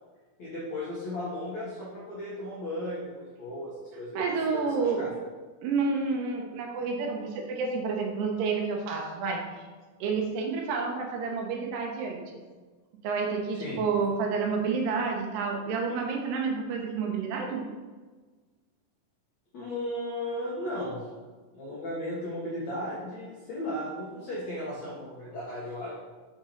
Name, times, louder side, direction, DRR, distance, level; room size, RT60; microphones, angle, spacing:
voice 1, 0.4-5.1 13.5-13.8 19.5-21.0 21.5-25.9, left 1 dB, 75° left, -7 dB, 1.6 m, -35 dB
voice 2, 4.1-5.1 5.6-9.5 10.0-12.2 13.0-17.7, right 4 dB, 75° right, 1 dB, 2.6 m, -29 dB
6.9 x 5.9 x 4.4 m, 1.4 s
omnidirectional pair, 5.5 m